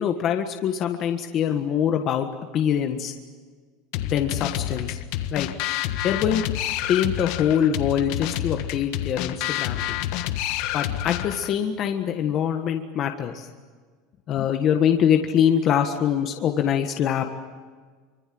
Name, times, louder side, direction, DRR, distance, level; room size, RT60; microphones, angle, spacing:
voice 1, 0.0-2.3 2.5-3.1 4.0-5.0 5.3-5.5 6.0-6.5 6.9-10.0 10.7-13.5 14.3-17.3, left 9 dB, 35° left, 5 dB, 1.5 m, -24 dB
sound 1, 3.9-11.6, left 12 dB, 55° left, 1.4 m, -28 dB
25.5 x 25.0 x 7.8 m, 1.5 s
cardioid pair, 170°, 0 cm